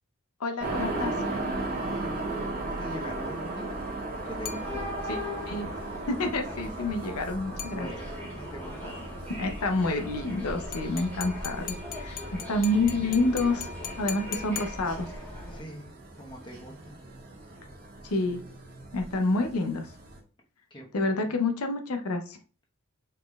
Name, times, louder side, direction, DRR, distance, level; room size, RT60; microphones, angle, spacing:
voice 1, 0.4-1.1 5.1-5.2 5.5-5.7 6.1-7.9 9.4-12.2 12.5-13.7 14.0-15.1 18.0-18.4 18.9-19.9 20.9-22.4, left 2 dB, 85° left, 6 dB, 0.7 m, -28 dB
sound 1, 0.6-20.2, right 2 dB, 40° right, 1.3 m, -37 dB
voice 2, 1.7-4.9 7.6-9.1 15.4-15.9 16.2-17.0 20.7-21.3, equal, 20° left, 0 dB, 1.0 m, -43 dB
sound 2, 4.2-15.6, left 1 dB, 5° left, 1.9 m, -40 dB
sound 3, 4.5-5.3 7.6-8.3 10.7-15.3, left 8 dB, 40° left, 0.5 m, -41 dB
5.2 x 4.2 x 2.3 m, 0.36 s
head